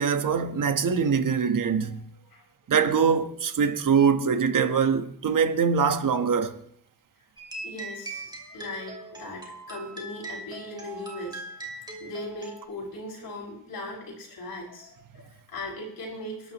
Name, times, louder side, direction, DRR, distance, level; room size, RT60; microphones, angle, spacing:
voice 1, 0.0-2.0 2.7-6.6, right 6 dB, 55° right, 1.2 m, -23 dB
voice 2, 1.8-2.5 7.6-11.4 11.7-16.5, left 1 dB, 75° left, 6.4 m, -39 dB
sound 1, 7.4-12.7, right 2 dB, 10° right, 2.5 m, -40 dB
30.0 x 12.5 x 3.1 m
wide cardioid pair, 165°, 38 cm